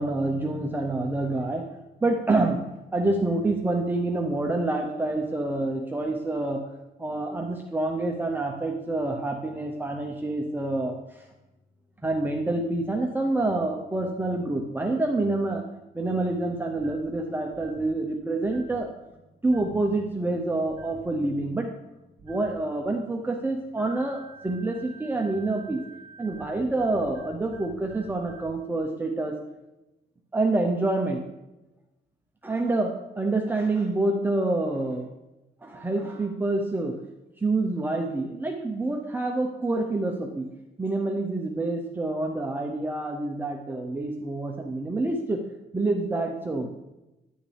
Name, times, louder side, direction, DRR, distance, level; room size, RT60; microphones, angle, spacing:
voice 1, 0.0-1.6 2.0-6.6 7.0-11.2 12.0-15.6 15.9-18.9 19.4-21.7 22.2-25.8 26.2-29.4 30.3-31.2 32.4-35.1 35.6-37.0 37.4-40.5 40.8-45.4 45.7-46.7, right 2 dB, 10° right, 1 dB, 0.8 m, -27 dB
sound 1, 16.8-17.1 17.5-17.9 18.4-18.8 19.5-19.8 20.7-21.0 22.2-22.5 23.8-28.5, right 3 dB, 35° right, 2.1 m, -48 dB
9.7 x 8.8 x 3.4 m, 0.97 s
cardioid pair, 130°, 18 cm